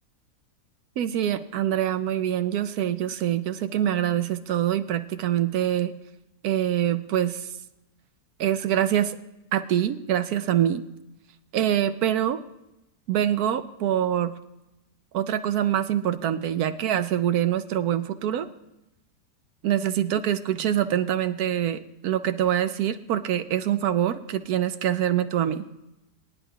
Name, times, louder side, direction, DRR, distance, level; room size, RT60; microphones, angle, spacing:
voice 1, 1.0-5.9 6.4-7.5 8.4-9.2 9.5-10.8 11.5-12.4 13.1-14.3 15.1-18.5 19.6-25.6, right 11 dB, 70° right, 11 dB, 1.0 m, -25 dB
22.5 x 10.5 x 2.3 m, 0.93 s
omnidirectional pair, 1.8 m